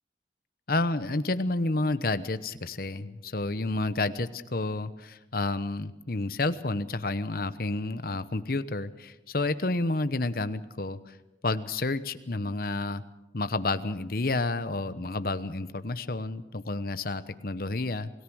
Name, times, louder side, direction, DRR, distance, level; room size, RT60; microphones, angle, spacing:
voice 1, 0.7-11.1 11.4-13.0 13.3-18.1, left 2 dB, 55° left, 12 dB, 1.0 m, -30 dB
28.0 x 17.5 x 6.3 m, 0.97 s
head